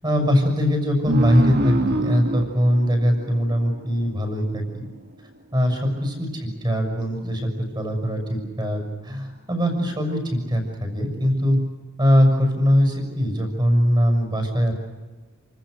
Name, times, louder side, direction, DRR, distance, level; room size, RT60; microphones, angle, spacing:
voice 1, 0.0-4.9 5.5-11.6 12.0-14.7, equal, 20° right, 5 dB, 6.4 m, -21 dB
sound 1, 1.1-4.2, right 1 dB, 50° right, 1.9 m, -25 dB
29.0 x 26.5 x 6.6 m, 1.3 s
head